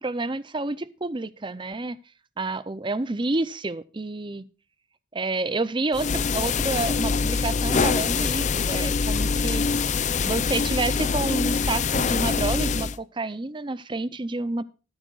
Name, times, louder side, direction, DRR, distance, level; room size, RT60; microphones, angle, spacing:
voice 1, 0.0-2.0 2.4-4.4 5.1-9.6 10.2-14.6, right 2 dB, 25° right, 0.6 m, -29 dB
sound 1, 5.9-13.0, left 5 dB, 35° left, 0.5 m, -24 dB
14.0 x 13.0 x 2.4 m
head